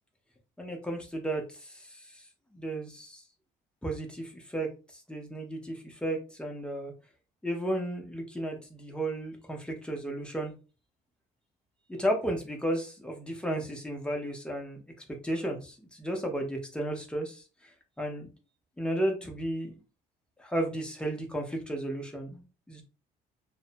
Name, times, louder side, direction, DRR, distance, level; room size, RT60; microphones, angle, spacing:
voice 1, 0.6-2.2 2.5-3.2 3.8-6.9 7.4-10.5 11.9-14.8 15.2-18.3 18.8-19.8 20.4-22.8, right 1 dB, 5° left, 2 dB, 0.7 m, -34 dB
2.6 x 2.1 x 2.5 m, 0.32 s
cardioid pair, 110°, 17 cm